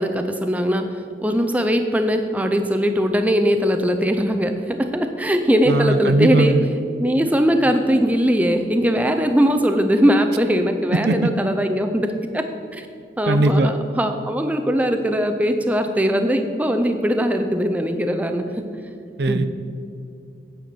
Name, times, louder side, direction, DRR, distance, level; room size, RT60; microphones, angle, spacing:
voice 1, 0.0-6.5 7.0-12.9 13.2-18.5 19.3-19.5, equal, 10° right, 6 dB, 0.4 m, -20 dB
voice 2, 5.7-6.7 10.9-11.3 13.3-13.7 19.2-19.5, right 2 dB, 65° right, 10 dB, 0.5 m, -19 dB
9.3 x 5.7 x 6.7 m, 2.4 s
head